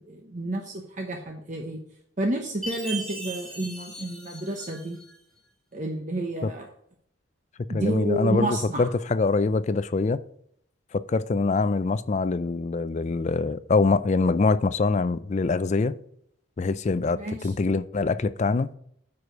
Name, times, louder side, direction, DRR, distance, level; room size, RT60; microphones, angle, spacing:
voice 1, 0.1-1.8 2.2-5.0 5.7-6.7 7.7-8.9 17.1-17.5, right 1 dB, 40° right, 0.9 m, -30 dB
Chime, 2.6-5.1, right 2 dB, 5° left, 2.7 m, -38 dB
voice 2, 7.7-10.2 10.9-15.9 16.6-18.7, left 3 dB, 35° left, 0.4 m, -24 dB
9.4 x 4.9 x 5.1 m
head